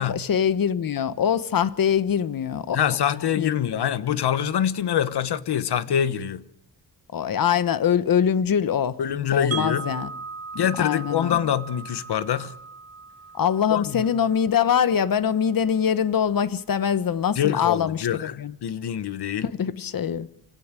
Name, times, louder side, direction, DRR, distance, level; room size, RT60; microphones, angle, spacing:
voice 1, 0.0-2.8 3.4-3.8 7.1-9.0 9.3-10.1 10.8-11.4 13.3-18.5 19.4-20.3, left 8 dB, 55° left, 1.1 m, -23 dB
voice 2, 2.7-6.4 9.0-9.9 10.5-12.5 13.7-14.1 17.4-18.3 18.6-19.5, left 9 dB, 75° left, 1.2 m, -25 dB
Wind chime, 9.5-15.5, right 5 dB, 40° right, 1.0 m, -38 dB
26.5 x 17.5 x 7.6 m
wide cardioid pair, 140°, 40 cm